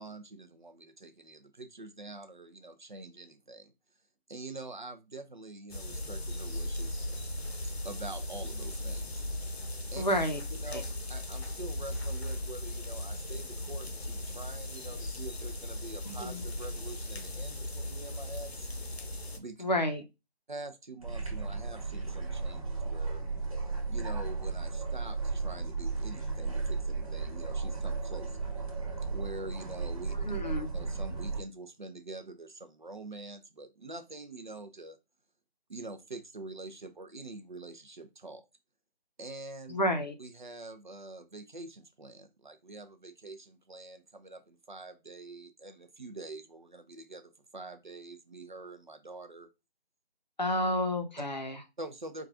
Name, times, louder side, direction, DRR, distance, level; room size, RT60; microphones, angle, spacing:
voice 1, 0.0-3.7 4.3-7.2 7.6-9.2 9.9-10.0 10.6-10.8 11.1-18.7 19.4-19.6 20.5-23.2 23.9-28.5 29.1-30.2 30.7-35.0 35.7-38.4 39.2-39.8 40.2-49.5 51.8-52.3, right 2 dB, 50° right, 8 dB, 0.6 m, -45 dB
sound 1, 5.7-19.4, left 1 dB, 80° left, 0.8 m, -37 dB
voice 2, 10.0-10.4 10.7-10.8 16.0-16.4 19.6-20.0 30.2-30.7 39.7-40.1 50.4-51.6, left 1 dB, 45° left, 5 dB, 0.6 m, -30 dB
sound 2, 21.0-31.4, right 4 dB, 35° right, 1.1 m, -34 dB
4.7 x 2.3 x 2.5 m, 0.25 s
figure-of-eight pair, 165°, 32 cm